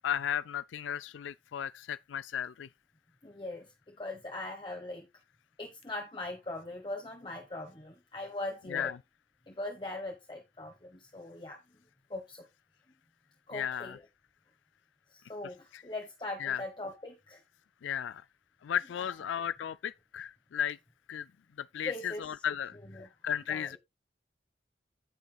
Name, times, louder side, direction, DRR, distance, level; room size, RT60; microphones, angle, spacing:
voice 1, 0.0-2.7 8.7-9.0 13.5-14.0 15.7-15.8 16.4-16.6 17.8-18.2 18.6-20.8 21.1-21.3 21.6-22.8 23.2-23.8, left 9 dB, 85° left, 0.4 m, -34 dB
voice 2, 3.2-5.1 5.6-8.9 9.5-11.6 12.1-12.4 13.5-14.0 15.3-17.4 19.0-19.1 21.8-22.3 22.9-23.1 23.5-23.8, left 2 dB, 25° left, 1.3 m, -40 dB
16.0 x 5.5 x 2.3 m
head